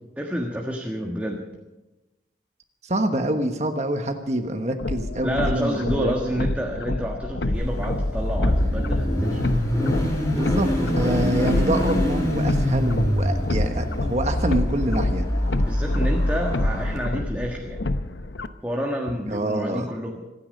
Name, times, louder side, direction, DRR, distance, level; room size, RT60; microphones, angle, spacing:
voice 1, 0.2-1.4 5.2-9.6 15.6-17.8 18.6-20.2, equal, 10° right, 0 dB, 1.4 m, -29 dB
voice 2, 2.8-6.5 10.3-15.2 19.3-19.9, right 1 dB, 40° right, 5 dB, 1.3 m, -26 dB
sound 1, 4.8-18.5, left 2 dB, 75° left, 0.8 m, -29 dB
Car / Idling / Accelerating revving vroom, 7.5-17.0, equal, 20° left, 3.6 m, -24 dB
26.5 x 9.9 x 5.3 m, 1.1 s
head